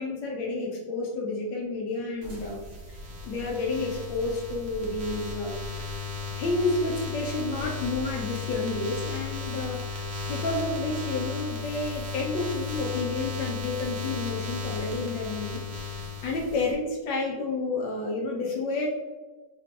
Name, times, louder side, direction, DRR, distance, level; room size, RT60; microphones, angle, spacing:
voice 1, 0.0-2.6 2.9-3.0 3.2-6.1 6.4-15.6 15.9-18.9, left 3 dB, 70° left, 0 dB, 1.2 m, -30 dB
sound 1, 2.2-16.7, left 4 dB, 80° right, 0.5 m, -35 dB
4.6 x 2.3 x 3.6 m, 1.2 s
omnidirectional pair, 2.4 m